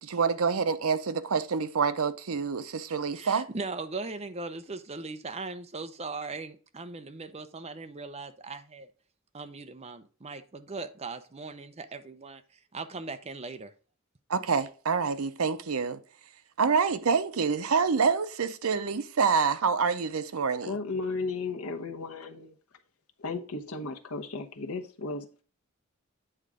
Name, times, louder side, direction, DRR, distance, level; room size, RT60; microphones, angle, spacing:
voice 1, 0.0-3.5 14.3-16.0 16.6-20.7, right 5 dB, 85° right, 0.6 m, -27 dB
voice 2, 3.1-8.9 9.3-13.7, right 3 dB, 30° right, 0.7 m, -39 dB
voice 3, 20.6-22.6 23.2-25.4, left 3 dB, 90° left, 1.0 m, -35 dB
8.8 x 3.8 x 4.9 m
head